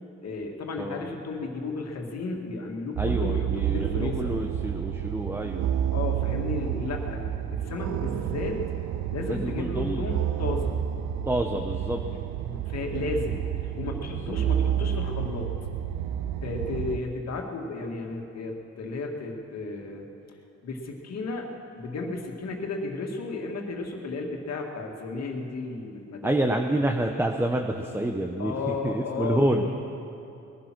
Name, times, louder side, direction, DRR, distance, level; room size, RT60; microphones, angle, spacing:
voice 1, 0.2-4.4 5.9-8.7 9.1-10.8 12.5-15.5 16.4-20.1 20.6-21.5 21.7-26.3 28.4-29.7, left 3 dB, 60° left, 1 dB, 2.2 m, -33 dB
voice 2, 0.8-1.1 3.0-5.7 9.3-10.1 11.3-12.0 14.1-14.4 26.2-29.7, right 1 dB, 10° right, 3 dB, 0.9 m, -28 dB
sound 1, 3.0-17.0, right 10 dB, 75° right, 0.7 m, -30 dB
20.5 x 11.0 x 6.1 m, 2.8 s
cardioid pair, 90°, 30 cm